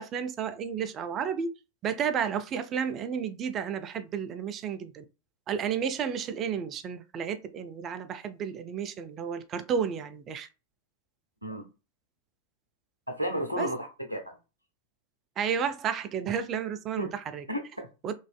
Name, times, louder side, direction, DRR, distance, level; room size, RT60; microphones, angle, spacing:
voice 1, 0.0-1.5 1.8-5.0 5.5-10.5 13.6-13.7 15.4-17.4 18.0-18.1, right 7 dB, 30° right, 0.4 m, -32 dB
voice 2, 13.1-14.4 17.0-17.1 17.5-17.9, equal, 85° right, 0.7 m, -33 dB
3.1 x 2.5 x 2.2 m
figure-of-eight pair, 90°, 0 cm